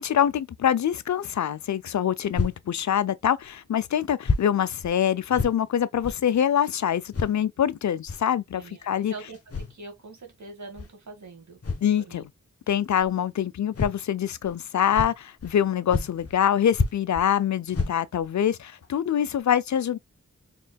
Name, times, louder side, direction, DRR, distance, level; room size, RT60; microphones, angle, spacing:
voice 1, 0.0-9.1 11.8-12.2 12.7-20.0, left 9 dB, 65° left, 0.5 m, -25 dB
sound 1, 2.3-2.6 3.4-3.5 4.2-4.5 4.8-5.0 5.3-5.6 6.0-6.2 7.1-7.3 8.1-8.2 9.3-9.7 10.8-10.9 11.6-11.9 13.0-13.1 13.7-14.0 14.4-14.6 14.9-15.6 15.9-16.4 16.7-17.3 17.7-18.3 18.8-18.9 19.4-19.5, left 4 dB, 50° left, 1.1 m, -29 dB
voice 2, 9.1-11.6 12.1-12.2, right 3 dB, 65° right, 1.9 m, -43 dB
4.3 x 3.6 x 2.3 m
cardioid pair, 45°, 31 cm